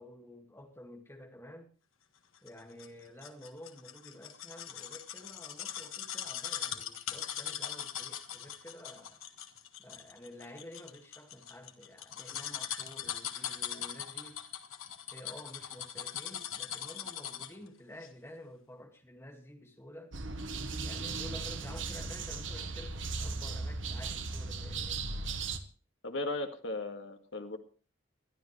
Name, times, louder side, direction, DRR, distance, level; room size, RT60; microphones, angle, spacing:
voice 1, 0.0-1.7 2.4-9.2 9.8-14.4 15.1-20.1 20.8-25.0, left 1 dB, 10° left, 2.1 m, -51 dB
sound 1, 2.5-17.6 18.0-18.1, left 9 dB, 90° left, 1.6 m, -40 dB
sound 2, 20.1-25.6, right 4 dB, 70° right, 1.4 m, -37 dB
voice 2, 26.0-27.6, left 2 dB, 65° left, 2.1 m, -36 dB
21.0 x 12.0 x 3.3 m
head